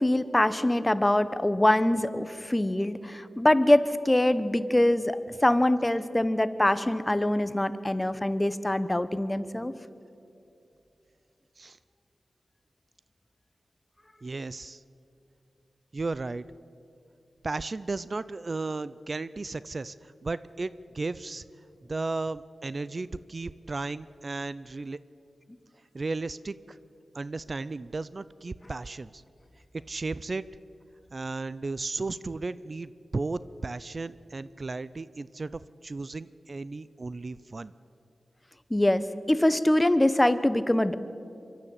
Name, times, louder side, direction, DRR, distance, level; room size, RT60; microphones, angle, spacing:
voice 1, 0.0-9.7 38.7-40.9, left 1 dB, 15° left, 13 dB, 1.0 m, -24 dB
voice 2, 14.2-14.8 15.9-16.4 17.4-21.4 21.9-25.0 25.9-26.8 27.1-29.2 29.9-30.4 31.1-37.7, right 3 dB, 45° right, 17 dB, 0.5 m, -34 dB
24.5 x 12.5 x 8.7 m, 2.7 s
cardioid pair, 55°, 0 cm